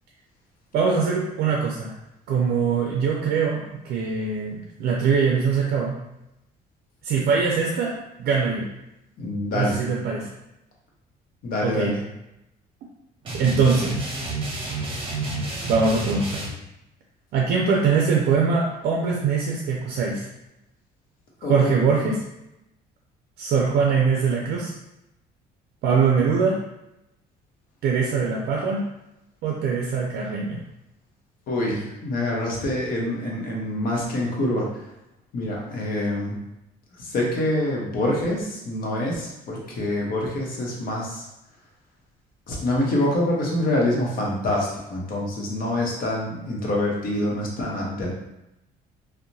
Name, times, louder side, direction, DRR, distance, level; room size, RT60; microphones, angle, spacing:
voice 1, 0.7-1.9 2.3-5.9 7.0-8.7 9.5-10.3 11.6-12.0 13.3-14.0 15.6-16.4 17.3-20.3 21.4-22.2 23.4-24.7 25.8-26.6 27.8-28.8 29.4-30.6, right 5 dB, 70° right, -1 dB, 0.4 m, -22 dB
voice 2, 9.2-9.8 11.4-12.0 21.4-21.7 31.5-34.8 35.3-36.4 37.0-41.3 42.5-48.1, left 1 dB, 60° left, -2 dB, 0.8 m, -26 dB
sound 1, 13.2-16.5, right 2 dB, 30° right, 0.7 m, -30 dB
2.7 x 2.1 x 2.6 m, 0.89 s
cardioid pair, 110°, 17 cm